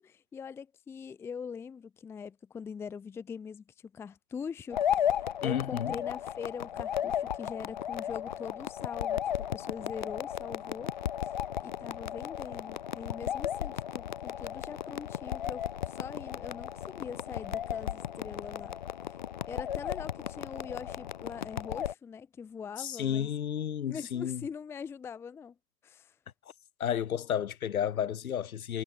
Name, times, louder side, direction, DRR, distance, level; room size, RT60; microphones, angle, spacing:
voice 1, 0.0-3.6 3.9-9.2 9.5-10.9 11.2-11.3 11.6-18.7 19.1-19.2 19.5-23.3 23.9-25.5 25.8-26.2, left 6 dB, 5° left, 1.1 m, -42 dB
sound 1, 4.7-21.9, left 10 dB, 30° left, 0.6 m, -35 dB
voice 2, 5.4-5.9 22.8-24.4 26.8-28.8, left 9 dB, 60° left, 3.6 m, -32 dB
hypercardioid pair, 155°, 49 cm